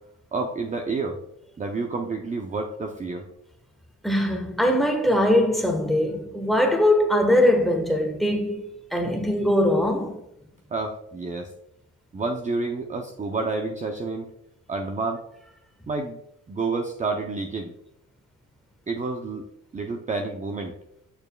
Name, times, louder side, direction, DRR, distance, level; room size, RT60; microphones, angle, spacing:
voice 1, 0.3-1.2 1.6-3.3 10.7-11.5 12.1-14.3 14.7-15.2 15.9-16.2 16.5-17.7 18.9-19.4 19.7-20.8, right 3 dB, 25° right, 0.6 m, -29 dB
voice 2, 4.0-10.2, left 1 dB, ahead, 1.3 m, -21 dB
7.0 x 6.5 x 2.3 m
cardioid pair, 90°, 30 cm